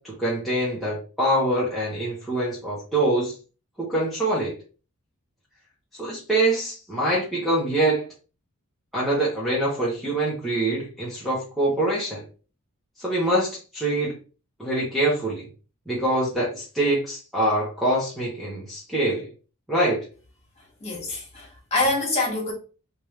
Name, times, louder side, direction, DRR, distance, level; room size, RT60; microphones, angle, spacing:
voice 1, 0.0-3.3 3.8-4.5 6.0-8.0 8.9-12.2 13.0-14.2 14.6-15.5 15.9-19.3 19.7-20.0, right 1 dB, ahead, 1.1 m, -24 dB
voice 2, 20.8-22.5, left 2 dB, 30° left, 1.7 m, -25 dB
3.3 x 3.2 x 3.1 m
head